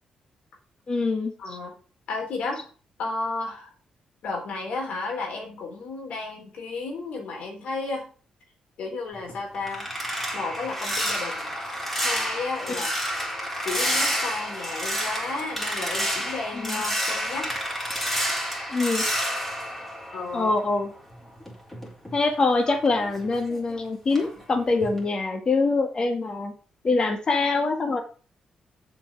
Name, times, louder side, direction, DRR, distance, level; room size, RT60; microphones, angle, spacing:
voice 1, 0.9-1.6 12.7-12.8 16.5-16.8 18.7-19.0 20.3-20.9 22.1-26.5 26.8-28.0, left 3 dB, 35° left, 5 dB, 1.8 m, -24 dB
voice 2, 1.4-1.7 2.1-2.7 3.0-3.7 4.2-8.1 8.8-9.9 10.3-11.5 12.0-12.9 13.6-17.5 20.1-20.5, left 3 dB, 75° left, 1 dB, 3.8 m, -33 dB
sound 1, 9.1-20.8 21.1-23.8 24.1-24.4 24.8-25.0, equal, 10° left, 3.8 m, -29 dB
7.3 x 5.9 x 7.4 m, 0.38 s
cardioid pair, 105°, 2 cm